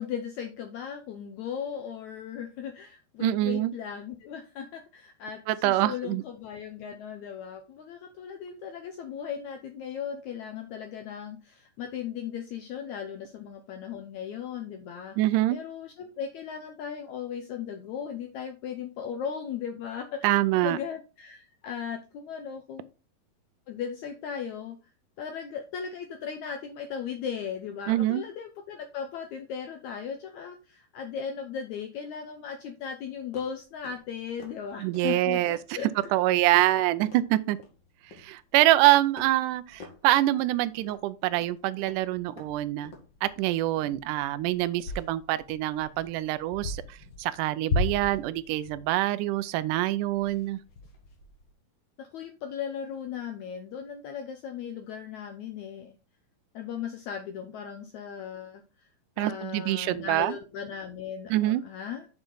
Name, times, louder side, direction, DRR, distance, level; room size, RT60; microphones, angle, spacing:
voice 1, 0.0-15.2 15.5-22.9 23.7-24.8 25.2-35.4 35.7-35.9 52.0-56.0 56.5-58.6 59.2-62.1, left 7 dB, 75° left, 1.7 m, -37 dB
voice 2, 3.2-3.7 5.5-6.2 15.2-15.6 20.2-20.8 27.9-28.2 34.8-35.6 36.1-37.6 38.2-42.9 43.2-50.6 59.2-60.3 61.3-61.6, right 15 dB, 80° right, 1.9 m, -25 dB
sound 1, 33.2-51.5, left 2 dB, 45° left, 1.5 m, -40 dB
7.0 x 6.6 x 3.9 m
omnidirectional pair, 4.2 m